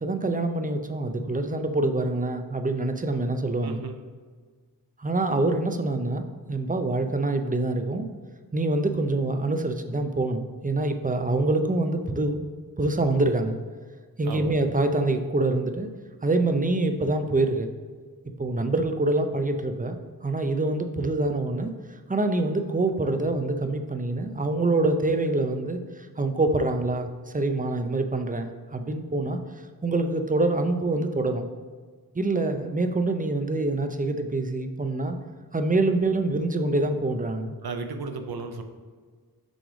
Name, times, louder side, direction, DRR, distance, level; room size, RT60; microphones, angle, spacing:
voice 1, 0.0-3.8 5.0-8.1 8.5-12.5 12.8-13.6 14.2-15.9 16.2-17.7 18.4-20.0 20.2-21.7 22.1-29.4 29.8-31.5 32.1-35.2 35.5-37.6, right 2 dB, 20° right, 7 dB, 0.5 m, -25 dB
voice 2, 3.6-4.0 14.2-14.5 37.6-38.6, right 4 dB, 70° right, 6 dB, 0.6 m, -34 dB
6.1 x 3.3 x 4.9 m, 1.5 s
wide cardioid pair, 50°, 39 cm